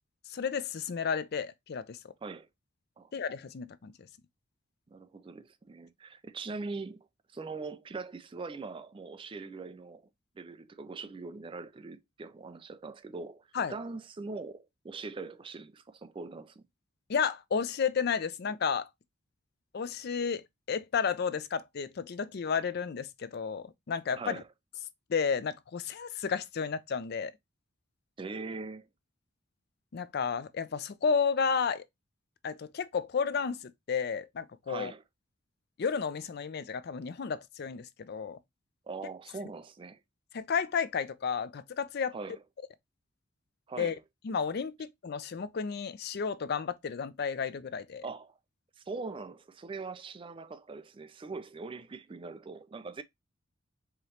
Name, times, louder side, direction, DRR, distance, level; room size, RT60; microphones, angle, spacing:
voice 1, 0.3-2.1 3.1-3.9 13.5-13.7 17.1-18.9 19.7-24.4 25.1-27.3 29.9-31.8 32.4-34.9 35.8-38.4 40.3-42.1 43.8-43.9 44.2-48.0, left 6 dB, 55° left, 0.4 m, -32 dB
voice 2, 4.9-7.1 7.3-10.1 10.4-16.6 24.1-24.5 28.2-28.9 34.7-35.0 38.9-40.0 42.1-42.4 43.7-44.0 48.0-48.4 48.8-53.0, right 4 dB, 25° right, 0.3 m, -42 dB
4.8 x 3.0 x 2.8 m
head